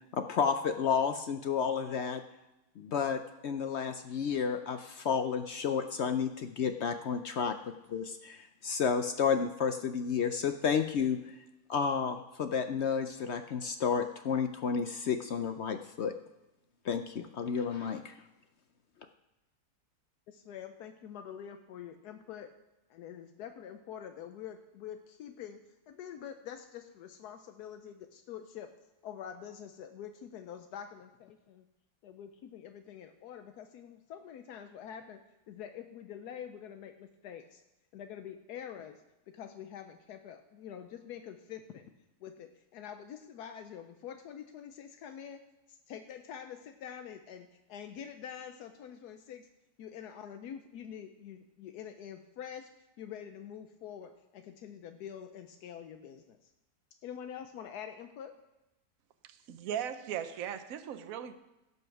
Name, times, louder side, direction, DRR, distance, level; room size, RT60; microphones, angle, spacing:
voice 1, 0.1-2.2 2.8-7.6 7.9-11.2 11.7-16.1 16.8-18.1, left 6 dB, 65° left, 8 dB, 0.6 m, -31 dB
voice 2, 20.3-22.5 22.9-28.7 29.0-31.7 32.0-35.2 35.5-37.6 37.9-39.0 39.3-41.8 42.2-45.4 45.9-49.5 49.8-52.7 53.0-56.4 57.0-58.3, left 9 dB, 80° left, 7 dB, 1.2 m, -46 dB
voice 3, 59.5-61.3, right 9 dB, 65° right, 9 dB, 1.1 m, -37 dB
16.0 x 5.6 x 5.9 m, 0.98 s
omnidirectional pair, 1.7 m